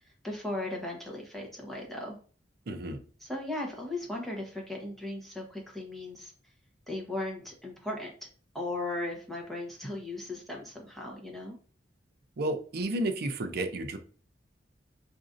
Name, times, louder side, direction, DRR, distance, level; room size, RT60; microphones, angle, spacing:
voice 1, 0.2-2.2 3.2-6.3 6.9-8.3 8.5-11.6, left 2 dB, ahead, 0.9 m, -37 dB
voice 2, 2.7-3.0 12.4-14.0, right 1 dB, 55° right, 0.5 m, -32 dB
4.9 x 2.6 x 2.5 m
head